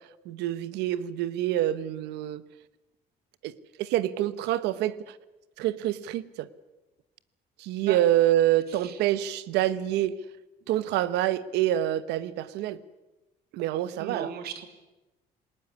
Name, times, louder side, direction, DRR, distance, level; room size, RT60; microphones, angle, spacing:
voice 1, 0.2-2.4 3.4-3.5 3.8-5.2 5.6-6.5 7.6-10.1 10.7-12.8 13.5-14.3, right 13 dB, 90° right, 15 dB, 1.1 m, -26 dB
voice 2, 8.7-9.0 14.0-14.7, right 8 dB, 70° right, 8 dB, 3.0 m, -37 dB
19.5 x 19.0 x 9.7 m, 1.1 s
cardioid pair, 110°, 17 cm